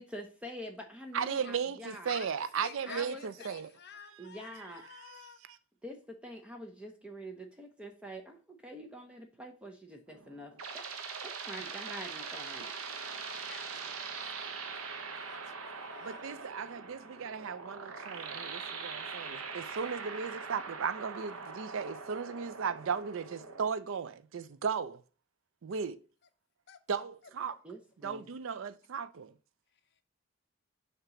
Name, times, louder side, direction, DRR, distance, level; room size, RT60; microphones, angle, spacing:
voice 1, 0.0-2.1 2.9-3.2 4.2-4.8 5.8-10.8 11.2-12.7 27.6-28.3, equal, 5° right, 0.7 m, -46 dB
voice 2, 1.1-3.7 4.1-5.6 11.1-11.3 16.0-25.0 25.6-26.0 26.9-27.6 28.0-29.3, right 6 dB, 65° right, 0.4 m, -36 dB
voice 3, 2.1-5.4 12.9-16.3 26.7-26.8, left 6 dB, 50° left, 0.7 m, -51 dB
sound 1, 10.1-23.7, right 5 dB, 85° right, 0.9 m, -42 dB
6.7 x 2.9 x 5.7 m
head